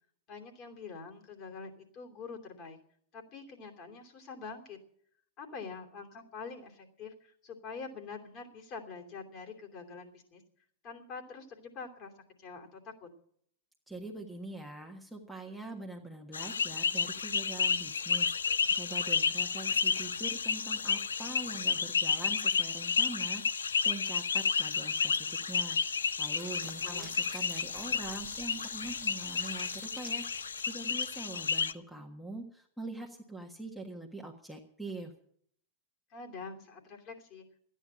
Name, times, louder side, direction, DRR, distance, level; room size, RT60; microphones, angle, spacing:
voice 1, 0.3-2.8 3.1-4.8 5.4-10.4 10.8-12.1 12.4-13.1 26.8-27.2 36.1-37.5, left 4 dB, 35° left, 1 dB, 2.9 m, -45 dB
voice 2, 13.9-35.1, right 2 dB, ahead, 1 dB, 1.6 m, -44 dB
sound 1, 16.3-31.7, left 5 dB, 70° left, 0.6 m, -31 dB
sound 2, 26.2-31.2, right 5 dB, 15° right, 1.4 m, -54 dB
13.5 x 10.0 x 8.7 m, 0.65 s
figure-of-eight pair, 90°, 0 cm